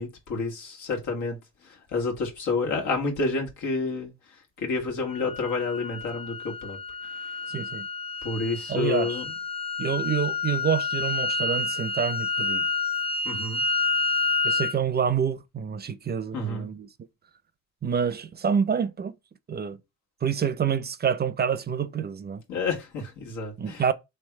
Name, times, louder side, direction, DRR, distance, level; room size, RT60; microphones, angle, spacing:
voice 1, 0.0-7.5 8.2-9.3 13.2-13.6 16.3-16.7 22.5-23.9, left 3 dB, 90° left, 1.6 m, -30 dB
sound 1, 5.1-14.8, left 3 dB, 20° left, 0.4 m, -29 dB
voice 2, 7.5-7.9 8.7-9.2 9.8-12.7 14.4-16.9 17.8-19.1 19.5-19.8 20.2-22.4 23.6-23.9, right 7 dB, 35° right, 0.5 m, -27 dB
3.4 x 3.3 x 4.6 m
cardioid pair, 90°, 30 cm